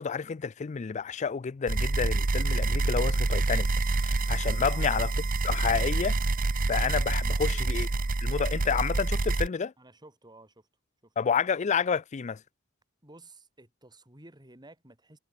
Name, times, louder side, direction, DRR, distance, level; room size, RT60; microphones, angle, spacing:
voice 1, 0.0-3.7 4.0-5.1 5.4-6.2 6.7-7.9 8.2-9.7 11.2-12.4, left 6 dB, 35° left, 0.4 m, -29 dB
sound 1, 1.7-9.5, right 2 dB, 45° right, 0.9 m, -27 dB
voice 2, 4.6-5.0 7.4-7.9 9.8-10.7 11.0-11.1 13.0-15.2, right 2 dB, 20° right, 5.5 m, -53 dB
head